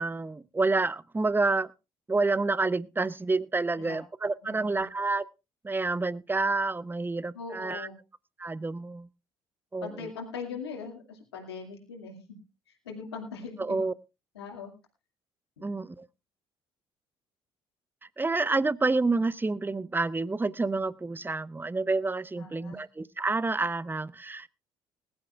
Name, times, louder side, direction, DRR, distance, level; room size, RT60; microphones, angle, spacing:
voice 1, 0.0-1.7 2.1-5.2 5.6-7.9 8.4-9.1 9.7-10.1 13.6-13.9 15.6-16.0 18.2-24.5, right 3 dB, 15° right, 0.8 m, -28 dB
voice 2, 4.4-4.8 7.3-8.0 9.8-12.2 12.7-13.8 14.3-14.7 22.4-22.8, left 5 dB, 85° left, 2.3 m, -41 dB
20.5 x 11.5 x 2.4 m
hypercardioid pair, 55°, 13 cm